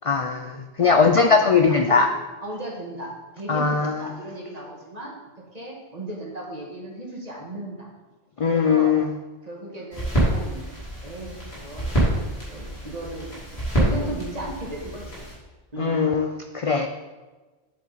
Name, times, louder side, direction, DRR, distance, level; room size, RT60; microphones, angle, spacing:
voice 1, 0.0-2.1 3.5-4.1 8.4-9.1 15.8-16.9, left 5 dB, 50° left, 5 dB, 0.4 m, -20 dB
voice 2, 0.8-2.1 2.4-5.1 5.5-7.9 8.4-8.9 9.4-10.6 11.0-12.0 12.5-13.3 13.7-15.2 15.7-16.0, right 1 dB, 40° right, -2 dB, 1.7 m, -35 dB
sound 1, 9.9-15.3, right 1 dB, 75° left, 3.1 m, -26 dB
7.6 x 7.5 x 4.0 m, 1.2 s
omnidirectional pair, 1.1 m